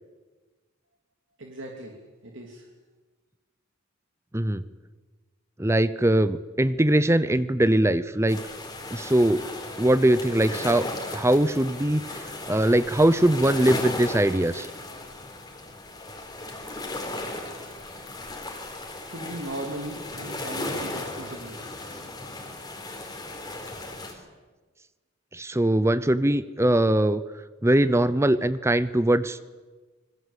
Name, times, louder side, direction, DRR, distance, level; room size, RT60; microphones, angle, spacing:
voice 1, 1.4-2.7 19.1-21.6, right 1 dB, 65° right, 1 dB, 3.0 m, -37 dB
voice 2, 5.6-8.4 8.9-9.4 9.8-10.9 11.1-14.7 25.3-27.2 27.6-29.4, right 1 dB, 15° right, 15 dB, 0.7 m, -21 dB
sound 1, 8.3-24.1, left 2 dB, 20° left, 4.0 m, -36 dB
27.0 x 21.0 x 8.3 m, 1.3 s
head